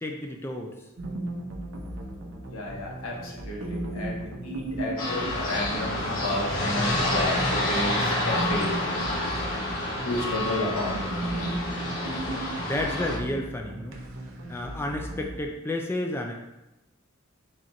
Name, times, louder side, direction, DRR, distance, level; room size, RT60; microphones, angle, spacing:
voice 1, 0.0-0.8 7.9-8.8 12.6-14.0 14.5-16.3, left 1 dB, 10° left, 2 dB, 0.3 m, -32 dB
sound 1, 1.0-15.5, right 1 dB, 70° right, 0.7 m, -36 dB
voice 2, 2.5-8.7 10.0-11.0, left 1 dB, 90° left, -2 dB, 1.0 m, -31 dB
sound 2, 5.0-13.2, left 1 dB, 70° left, 1.2 m, -28 dB
4.2 x 2.5 x 3.9 m, 0.96 s
head